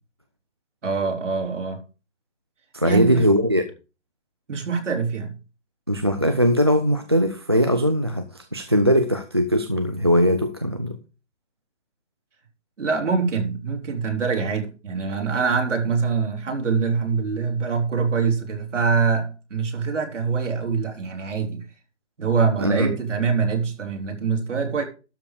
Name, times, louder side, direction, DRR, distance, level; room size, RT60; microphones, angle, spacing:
voice 1, 0.8-1.8 2.8-3.3 4.5-5.3 12.8-21.6 22.2-24.8, right 5 dB, 85° right, 3.8 m, -24 dB
voice 2, 2.7-3.6 5.9-8.3 8.5-11.0 22.6-22.9, equal, 25° right, 0.4 m, -20 dB
12.5 x 6.8 x 4.8 m
hypercardioid pair, 170°, 36 cm